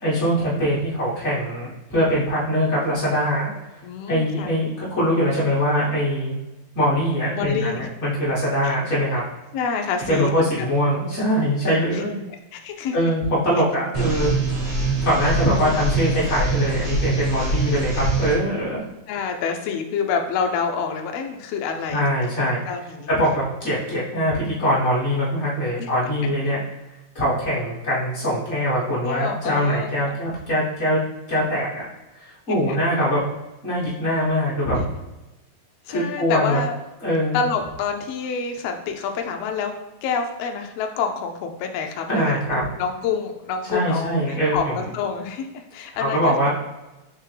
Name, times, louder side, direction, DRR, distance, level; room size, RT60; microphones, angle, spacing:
voice 1, 0.0-3.5 4.1-6.3 6.7-9.2 10.1-12.2 12.9-14.3 15.0-18.8 21.9-22.6 23.1-26.6 27.1-31.0 31.3-31.9 32.2-33.2 33.6-34.8 35.9-36.6 37.0-37.4 42.1-42.6 43.7-44.5 46.0-46.5, equal, 45° left, -8 dB, 0.9 m, -22 dB
voice 2, 3.8-4.5 7.4-7.9 8.6-8.8 9.5-10.9 11.6-12.1 12.5-13.0 14.0-14.1 15.3-15.8 19.1-22.0 22.7-23.1 25.8-25.9 29.0-29.9 32.5-32.8 35.9-36.7 37.3-39.7 40.0-46.5, left 5 dB, 85° left, 4 dB, 1.4 m, -28 dB
sound 1, 13.9-18.3, right 3 dB, 50° right, 0.7 m, -24 dB
4.3 x 3.4 x 3.2 m, 1.0 s
omnidirectional pair, 3.4 m